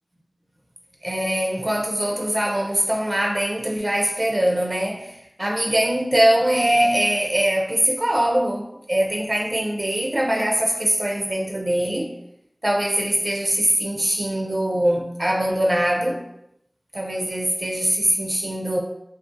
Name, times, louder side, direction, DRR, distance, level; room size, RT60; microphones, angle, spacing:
voice 1, 1.0-12.1 12.6-16.2 16.9-18.8, right 1 dB, 40° right, 0 dB, 0.4 m, -22 dB
2.4 x 2.4 x 2.5 m, 0.81 s
wide cardioid pair, 40°, 0 cm